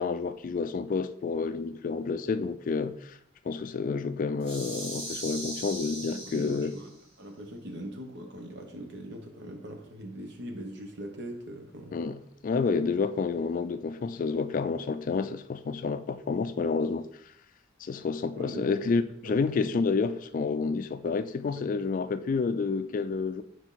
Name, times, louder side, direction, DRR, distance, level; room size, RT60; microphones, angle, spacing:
voice 1, 0.0-3.2 3.5-6.7 11.9-17.1 17.8-23.4, left 4 dB, 45° left, 0.3 m, -29 dB
sound 1, 4.4-7.0, right 1 dB, 25° right, 2.3 m, -39 dB
voice 2, 6.1-6.9 7.2-12.0 18.4-18.6 19.2-19.6 21.5-21.7, equal, 65° right, 1.2 m, -41 dB
6.1 x 4.8 x 4.0 m
head